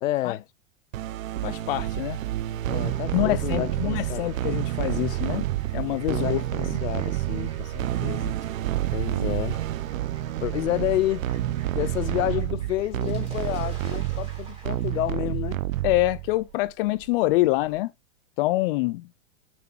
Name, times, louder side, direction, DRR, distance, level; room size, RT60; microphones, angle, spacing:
voice 1, 0.0-0.5 2.5-4.3 6.1-8.4 8.9-9.6 10.4-11.3 11.7-15.6, left 15 dB, 80° left, 0.7 m, -30 dB
sound 1, 0.9-16.4, right 14 dB, 85° right, 0.7 m, -29 dB
voice 2, 1.4-2.2 3.1-5.5 5.7-6.4 15.8-17.9 18.4-19.1, left 19 dB, 45° left, 0.6 m, -25 dB
Fowl, 1.5-17.8, right 5 dB, 15° right, 4.1 m, -49 dB
7.0 x 5.8 x 2.9 m
hypercardioid pair, 140°, 39 cm